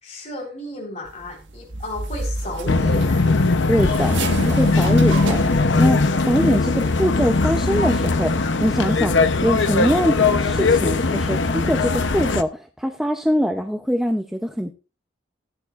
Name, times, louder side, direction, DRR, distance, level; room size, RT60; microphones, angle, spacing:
voice 1, 0.0-3.2, left 1 dB, 35° left, -2 dB, 4.0 m, -34 dB
sound 1, 1.0-6.5 6.7-7.0, right 2 dB, 75° right, 1.5 m, -32 dB
sound 2, 2.7-12.4, left 3 dB, 75° left, 0.8 m, -19 dB
voice 2, 3.7-14.7, equal, ahead, 4 dB, 0.6 m, -23 dB
17.0 x 9.7 x 2.5 m, 0.32 s
head